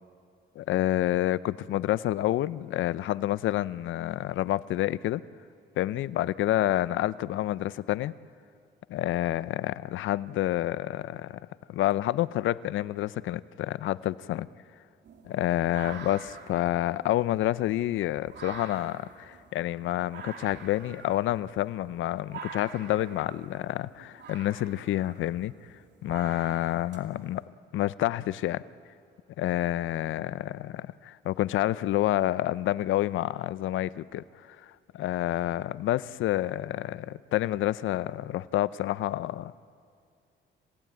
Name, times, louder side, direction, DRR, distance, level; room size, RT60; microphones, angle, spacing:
voice 1, 0.6-5.2 5.8-8.1 8.9-14.5 15.2-25.5 26.0-27.4 27.7-28.6 29.4-39.6, left 14 dB, 80° left, 17 dB, 0.6 m, -28 dB
sound 1, 15.0-27.4, right 5 dB, 60° right, 2.6 m, -47 dB
28.0 x 16.5 x 9.3 m, 2.3 s
cardioid pair, 90°, 20 cm